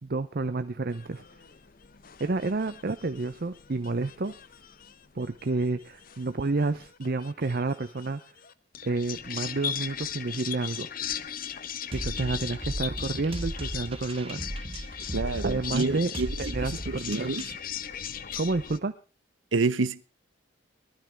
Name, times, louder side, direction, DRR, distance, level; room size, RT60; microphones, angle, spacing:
voice 1, 0.0-1.2 2.2-4.3 5.1-8.2 8.8-10.9 11.9-14.5 15.4-17.3 18.4-18.9, right 3 dB, 50° right, 0.6 m, -30 dB
sound 1, 0.9-18.8, left 9 dB, 50° left, 0.8 m, -39 dB
sound 2, 11.9-17.6, right 1 dB, 30° right, 1.4 m, -36 dB
voice 2, 15.1-16.3 16.9-17.4 19.5-20.0, right 3 dB, 90° right, 0.9 m, -27 dB
19.5 x 12.5 x 4.5 m
head